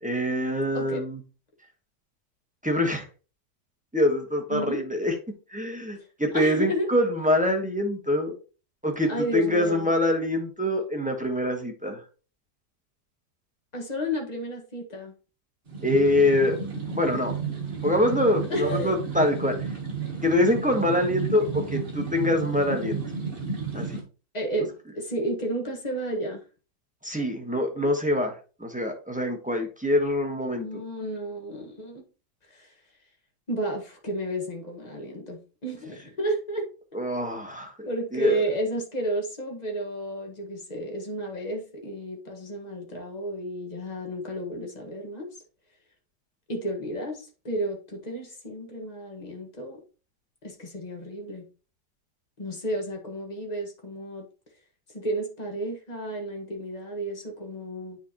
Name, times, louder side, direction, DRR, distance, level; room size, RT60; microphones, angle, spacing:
voice 1, 0.0-1.2 2.6-3.1 3.9-5.1 5.5-8.3 8.8-12.0 15.8-16.6 17.0-17.3 17.8-19.7 20.2-23.0 23.7-24.0 27.0-28.3 28.6-30.7 36.9-38.4, left 1 dB, 5° right, 3 dB, 0.9 m, -25 dB
voice 2, 4.5-4.8 6.3-6.9 9.1-9.9 13.7-15.1 18.5-18.9 24.3-26.4 30.6-32.0 32.5-32.7 33.5-36.7 37.9-45.3 46.5-49.8 50.4-51.5 52.4-54.2 54.9-58.0, right 1 dB, 25° left, 1 dB, 1.4 m, -32 dB
sound 1, 15.7-24.0, right 5 dB, 35° right, 1.6 m, -32 dB
9.2 x 4.3 x 2.9 m, 0.35 s
omnidirectional pair, 1.8 m